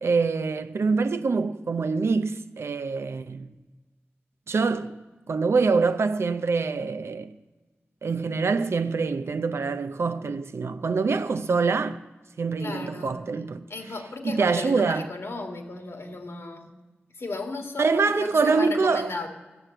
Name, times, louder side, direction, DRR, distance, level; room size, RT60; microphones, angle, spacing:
voice 1, 0.0-3.5 4.5-5.0 5.3-7.3 8.0-12.0 12.4-13.7 14.2-15.1 17.8-19.1, right 4 dB, 90° right, 0.5 m, -25 dB
voice 2, 12.6-13.2 13.7-16.7 17.2-19.3, left 3 dB, 80° left, 1.9 m, -35 dB
14.0 x 7.5 x 7.8 m
wide cardioid pair, 55°, 4 cm